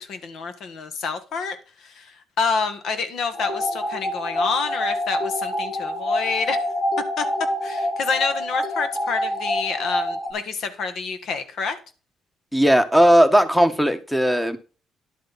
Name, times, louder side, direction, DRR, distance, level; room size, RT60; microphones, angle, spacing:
voice 1, 0.1-1.6 1.8-2.1 2.4-6.6 7.2-7.3 7.6-11.8, left 5 dB, 70° left, 1.6 m, -27 dB
sound 1, 3.3-10.3, left 1 dB, 50° left, 3.6 m, -26 dB
voice 2, 12.5-14.6, equal, 5° left, 1.3 m, -17 dB
11.0 x 7.7 x 4.2 m
cardioid pair, 90°, 0 cm